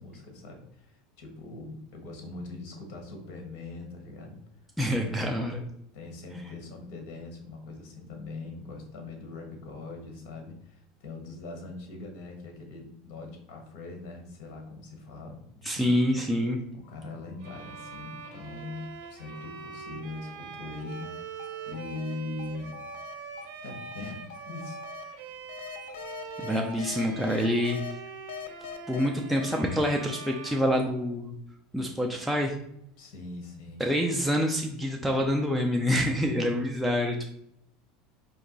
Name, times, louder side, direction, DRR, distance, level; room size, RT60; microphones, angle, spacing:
voice 1, 0.0-4.4 5.0-5.3 5.9-15.9 16.7-22.7 23.6-25.3 33.0-33.9, left 3 dB, 60° left, 4 dB, 1.3 m, -41 dB
voice 2, 4.8-5.6 15.6-16.6 26.4-27.8 28.9-31.3 31.7-32.6 33.8-37.3, equal, ahead, 0 dB, 0.5 m, -26 dB
sound 1, 16.8-19.7 20.1-25.0 25.5-27.9 28.3-30.6, left 9 dB, 90° left, 0.5 m, -44 dB
Bowed string instrument, 17.4-31.5, right 6 dB, 60° right, 0.8 m, -43 dB
4.4 x 2.9 x 3.9 m, 0.74 s
supercardioid pair, 135°, 0 cm